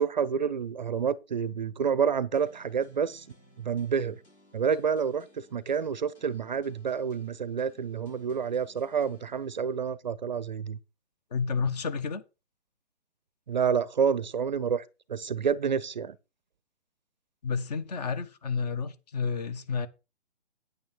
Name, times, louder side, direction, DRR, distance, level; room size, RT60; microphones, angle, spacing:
voice 1, 0.0-3.2 3.6-4.2 4.5-10.8 13.5-14.8 15.1-16.2, right 7 dB, 40° right, 0.7 m, -28 dB
sound 1, 2.3-10.0, equal, 70° left, 6.9 m, -60 dB
voice 2, 11.3-12.2 17.4-19.9, left 5 dB, 35° left, 1.4 m, -30 dB
9.5 x 9.0 x 4.5 m
figure-of-eight pair, 140°, 35 cm